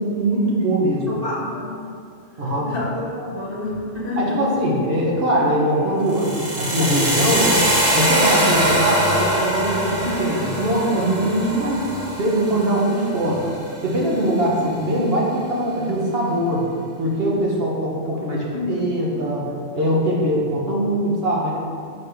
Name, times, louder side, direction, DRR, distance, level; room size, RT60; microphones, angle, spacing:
voice 1, 0.0-1.1 2.4-2.7 4.2-7.6 7.9-11.8 12.2-13.4 13.8-16.7 17.0-19.5 19.7-21.5, right 1 dB, 55° right, -4 dB, 1.3 m, -21 dB
voice 2, 1.1-1.8 2.6-4.4, left 2 dB, 50° left, -5 dB, 1.5 m, -28 dB
sound 1, 6.1-14.1, right 1 dB, 30° right, 1.4 m, -23 dB
6.4 x 5.5 x 3.4 m, 2.3 s
omnidirectional pair, 1.3 m